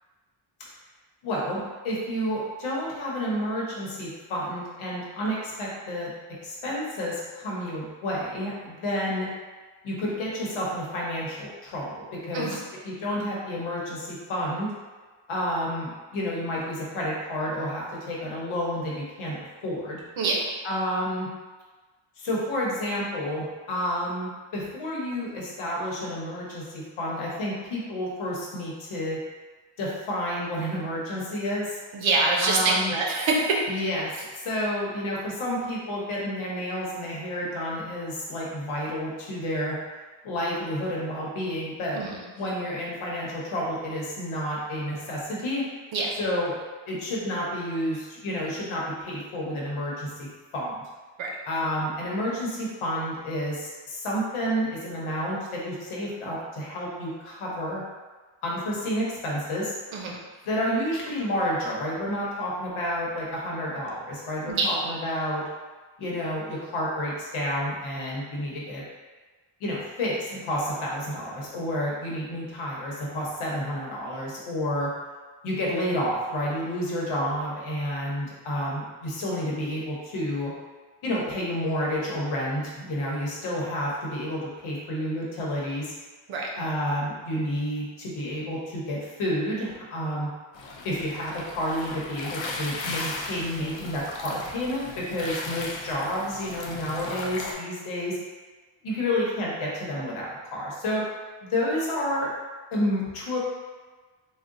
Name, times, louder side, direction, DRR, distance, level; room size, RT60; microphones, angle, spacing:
voice 1, 1.2-6.1 6.4-9.3 9.8-12.5 12.8-14.7 15.3-20.0 20.6-21.3 22.2-29.2 29.8-31.8 32.4-32.9 33.7-39.8 40.2-42.0 42.4-45.7 46.2-46.6 46.9-50.3 50.5-50.8 51.5-57.8 58.4-59.7 60.4-65.4 66.0-68.8 69.6-74.9 75.4-80.5 81.0-85.9 86.6-90.3 90.8-98.2 98.8-101.0 101.5-102.3 102.7-103.4, equal, 80° left, -4 dB, 1.0 m, -30 dB
voice 2, 20.2-20.5 31.9-33.7 41.9-42.2 45.9-46.2 51.2-51.3 59.9-60.2 64.5-64.7 86.3-86.5, right 3 dB, 70° right, -2 dB, 0.8 m, -25 dB
sound 1, 90.5-97.5, left 3 dB, 65° left, 0.6 m, -36 dB
3.6 x 2.3 x 2.5 m, 1.3 s
cardioid pair, 130°, 48 cm